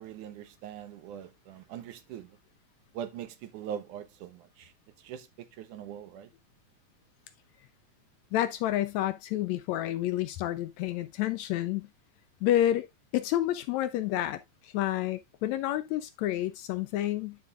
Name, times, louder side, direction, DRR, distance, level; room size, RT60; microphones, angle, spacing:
voice 1, 0.0-2.3 2.9-4.7 5.0-6.3, right 9 dB, 80° right, 2.4 m, -42 dB
voice 2, 8.3-11.9 12.4-12.9 13.1-17.4, left 13 dB, 80° left, 1.6 m, -29 dB
11.0 x 5.3 x 2.4 m
omnidirectional pair, 3.6 m